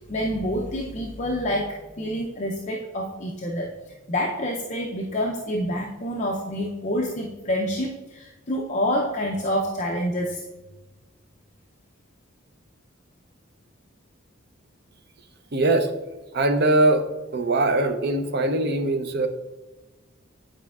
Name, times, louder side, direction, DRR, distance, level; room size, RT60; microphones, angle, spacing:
voice 1, 0.1-10.4, equal, 35° left, 0 dB, 0.5 m, -27 dB
voice 2, 15.5-15.9 16.3-17.0 17.3-19.3, right 2 dB, 55° right, 7 dB, 0.6 m, -21 dB
9.1 x 5.0 x 2.4 m, 1.1 s
head